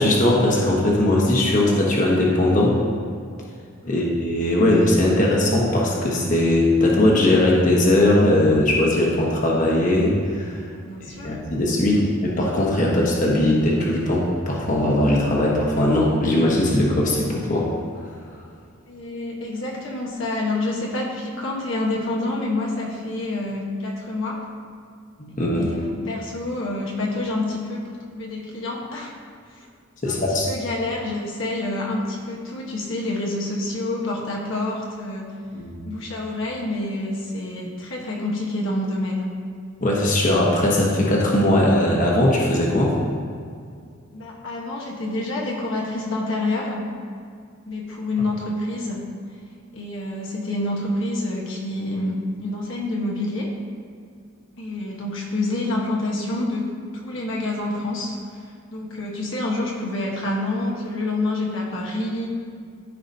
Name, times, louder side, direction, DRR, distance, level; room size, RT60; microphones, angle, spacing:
voice 1, 0.0-2.8 3.9-10.6 11.2-17.7 25.2-25.7 30.0-30.5 35.5-35.7 39.8-42.9, left 1 dB, 40° left, -3 dB, 1.2 m, -19 dB
voice 2, 10.8-11.3 11.9-12.0 18.9-24.4 25.5-29.1 29.6-29.7 30.0-30.1 30.5-35.3 35.8-39.3 44.1-46.9 47.7-49.1 49.7-53.5 54.6-58.2 58.7-62.3, left 2 dB, 65° left, -2 dB, 1.2 m, -27 dB
13.5 x 4.9 x 2.7 m, 2.2 s
head